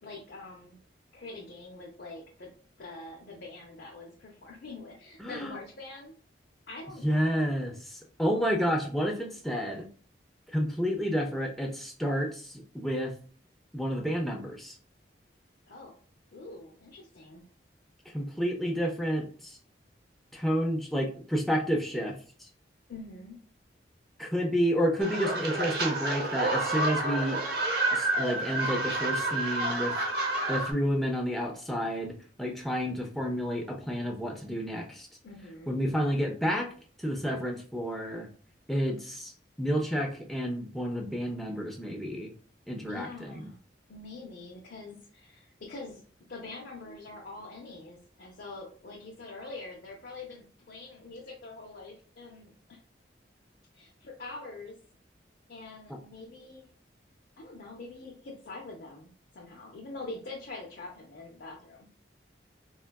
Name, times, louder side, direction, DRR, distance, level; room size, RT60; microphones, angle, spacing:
voice 1, 0.0-0.8 1.1-2.5 2.8-6.1 6.7-7.5 15.7-16.0 16.3-17.4 22.9-23.4 35.2-35.7 42.9-43.6 43.9-46.0 46.3-52.8 53.7-54.8 55.5-56.7 57.4-61.9, left 3 dB, 60° left, -1 dB, 0.5 m, -44 dB
voice 2, 5.2-5.6 7.0-9.9 10.5-13.1 13.7-14.8 18.1-19.6 20.3-22.5 24.2-27.4 27.9-29.9 30.3-32.1 32.4-35.1 35.7-36.7 37.0-38.3 38.7-39.3 39.6-42.3 42.7-43.5, equal, ahead, -1 dB, 0.3 m, -30 dB
sound 1, 25.0-30.7, right 2 dB, 60° right, 0.6 m, -29 dB
3.6 x 2.3 x 2.2 m, 0.44 s
head